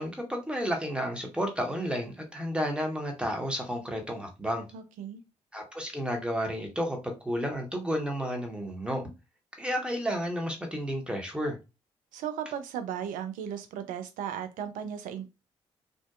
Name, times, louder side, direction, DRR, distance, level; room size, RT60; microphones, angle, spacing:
voice 1, 0.0-4.6 5.5-9.1 9.6-11.6, equal, 5° right, 0.9 m, -32 dB
voice 2, 4.7-5.2 12.1-15.3, right 9 dB, 70° right, 0.4 m, -36 dB
2.5 x 2.1 x 2.3 m
hypercardioid pair, 40°, 14 cm